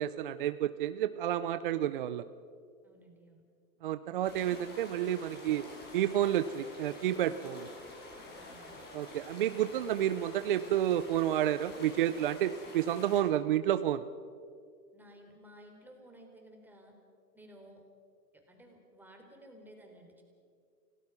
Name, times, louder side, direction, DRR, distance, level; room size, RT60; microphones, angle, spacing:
voice 1, 0.0-2.2 3.8-5.6 5.9-7.7 8.9-14.0, right 11 dB, 35° right, 12 dB, 0.5 m, -30 dB
voice 2, 2.8-3.4 8.3-8.8 14.9-16.9 17.3-17.8 18.3-20.2, equal, 5° right, 2 dB, 3.6 m, -55 dB
sound 1, 4.2-13.2, left 2 dB, 20° left, 5.4 m, -49 dB
28.5 x 18.0 x 6.0 m, 2.2 s
hypercardioid pair, 135°, 50 cm